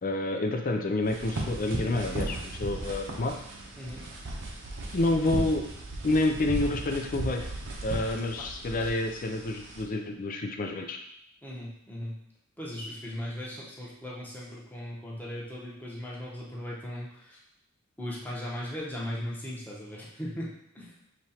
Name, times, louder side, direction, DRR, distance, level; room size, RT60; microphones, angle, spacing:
voice 1, 0.0-3.3 4.9-5.6 6.0-7.5 7.8-11.0, left 2 dB, 40° left, 4 dB, 0.5 m, -28 dB
sound 1, 1.1-9.8, right 2 dB, 60° right, 0.8 m, -36 dB
voice 2, 8.4-8.9 11.4-12.2 12.6-17.4 18.0-20.9, left 1 dB, 10° left, -6 dB, 1.0 m, -38 dB
5.2 x 3.1 x 2.9 m, 0.75 s
head